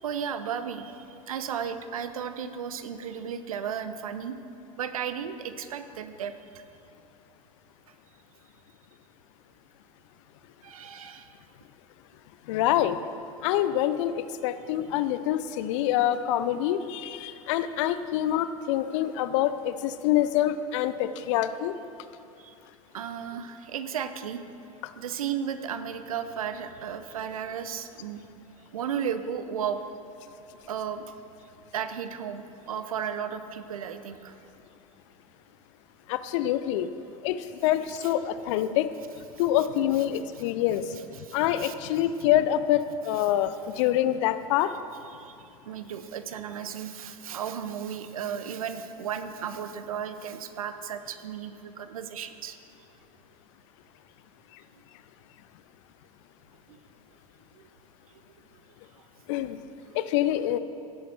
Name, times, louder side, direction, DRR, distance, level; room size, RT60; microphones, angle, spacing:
voice 1, 0.0-4.3 4.8-6.6 10.6-11.4 22.4-22.5 22.9-24.4 25.0-28.2 28.7-29.8 30.7-31.1 31.7-34.3 38.0-38.1 41.2-41.7 45.1-45.4 45.7-52.6 57.6-57.7 59.9-60.0, right 8 dB, 75° right, 10 dB, 0.7 m, -34 dB
voice 2, 12.5-13.0 13.4-21.7 24.8-24.9 36.1-36.9 37.2-38.9 39.4-41.0 41.3-44.7 59.3-59.6 59.9-60.6, left 12 dB, 55° left, 13 dB, 0.6 m, -26 dB
16.0 x 8.1 x 4.4 m, 2.6 s
figure-of-eight pair, 80°, 18 cm